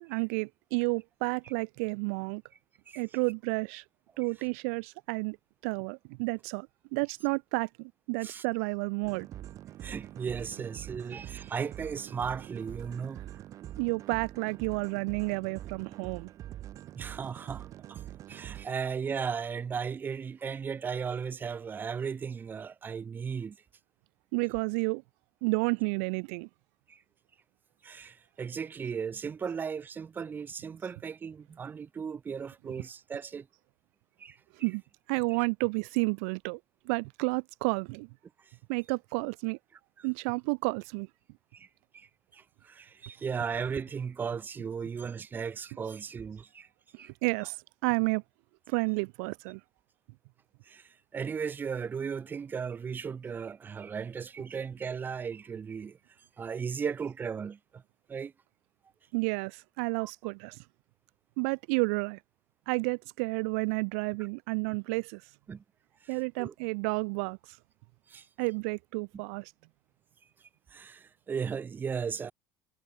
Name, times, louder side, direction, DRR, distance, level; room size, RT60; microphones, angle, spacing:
voice 1, 0.0-2.4 2.9-3.8 4.2-5.4 5.6-6.7 6.9-9.3 13.8-16.3 24.3-25.0 25.4-26.5 34.6-34.8 35.1-36.6 36.9-38.1 38.7-39.6 40.0-41.1 47.0-48.2 48.7-49.6 59.1-60.6 61.4-62.2 62.7-65.2 66.1-67.6 68.4-69.5, right 34 dB, 90° right, 0.9 m, -31 dB
sound 1, 9.0-18.7, right 13 dB, 50° right, 4.3 m, -44 dB
voice 2, 9.8-13.2 16.9-18.0 18.3-23.6 26.9-27.0 27.8-33.5 34.2-34.4 35.3-35.4 38.4-38.6 40.0-40.1 41.5-41.7 41.9-46.7 47.0-47.1 50.6-57.8 58.1-58.3 60.0-60.1 65.5-65.6 66.0-66.5 68.1-68.3 69.1-69.2 70.4-72.3, right 6 dB, 30° right, 7.9 m, -36 dB
cardioid pair, 125°, 7 cm